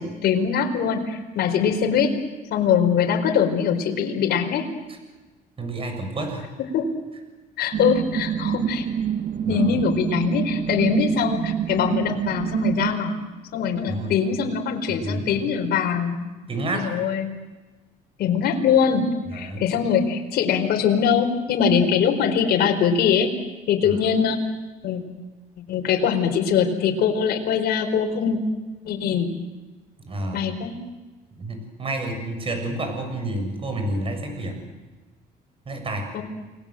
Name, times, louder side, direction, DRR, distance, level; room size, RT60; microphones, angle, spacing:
voice 1, 0.0-2.1 2.5-4.7 6.6-7.0 7.6-8.9 9.5-13.1 13.5-16.4 16.7-17.3 18.2-23.3 23.7-24.4 24.8-25.0 25.7-28.4 28.8-29.3 30.3-30.8 36.1-36.2, left 7 dB, 70° left, 3 dB, 4.6 m, -22 dB
voice 2, 5.6-6.5 9.4-9.7 13.9-14.1 15.0-15.3 16.5-16.9 19.3-19.7 30.0-30.5 31.3-34.6 35.7-36.1, right 2 dB, 35° right, 5 dB, 7.1 m, -29 dB
sound 1, 7.7-13.0, right 9 dB, 50° right, 0.9 m, -26 dB
29.5 x 21.0 x 7.9 m, 1.2 s
cardioid pair, 110°, 17 cm